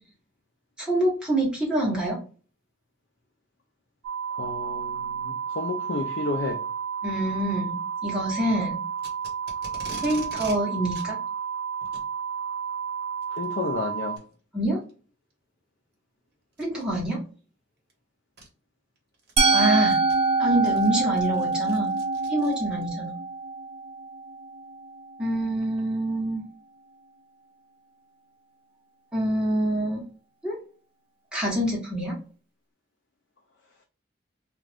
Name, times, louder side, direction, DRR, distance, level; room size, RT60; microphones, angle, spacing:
voice 1, 0.8-2.2 7.0-8.8 10.0-11.2 14.5-14.8 16.6-17.2 19.5-20.0 20.4-21.9 22.3-23.1 25.2-26.4 29.1-30.0 30.4-30.6 31.3-32.2, right 1 dB, 5° right, 1.1 m, -26 dB
sound 1, 4.0-14.2, right 7 dB, 80° right, 0.4 m, -32 dB
voice 2, 4.3-6.6 13.3-14.2, left 3 dB, 60° left, 0.5 m, -31 dB
Packing tape duct tape, 9.0-10.6 10.9-11.1 11.8-12.1 13.2-13.4 14.1-14.2 14.9-15.0 16.5-16.8 17.9-18.0 18.4-18.5 19.0-22.9, right 2 dB, 50° right, 1.1 m, -43 dB
Musical instrument, 19.4-25.3, right 3 dB, 25° right, 0.7 m, -25 dB
2.5 x 2.3 x 3.3 m
head